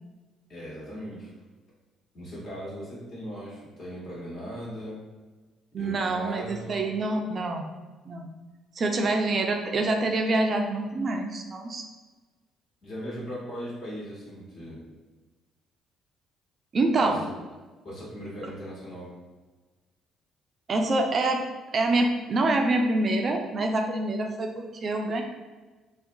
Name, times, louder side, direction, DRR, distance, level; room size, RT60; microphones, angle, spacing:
voice 1, 0.5-1.3 2.1-5.0 5.8-6.9 12.8-14.8 17.0-17.3 17.8-19.1, equal, 55° left, -6 dB, 1.1 m, -38 dB
voice 2, 5.7-7.7 8.1-8.3 8.8-11.8 16.7-17.2 20.7-21.4 21.7-25.2, right 2 dB, 45° right, 3 dB, 0.3 m, -26 dB
2.4 x 2.1 x 2.6 m, 1.3 s
hypercardioid pair, 50°, 0 cm